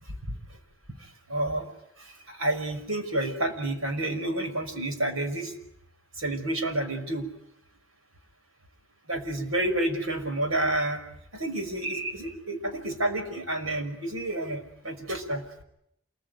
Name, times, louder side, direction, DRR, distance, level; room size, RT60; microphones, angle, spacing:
voice 1, 1.3-1.6 2.3-5.5 6.2-7.3 9.1-11.0 11.3-15.4, right 1 dB, 85° right, 6 dB, 5.6 m, -29 dB
28.0 x 21.5 x 9.4 m, 0.75 s
head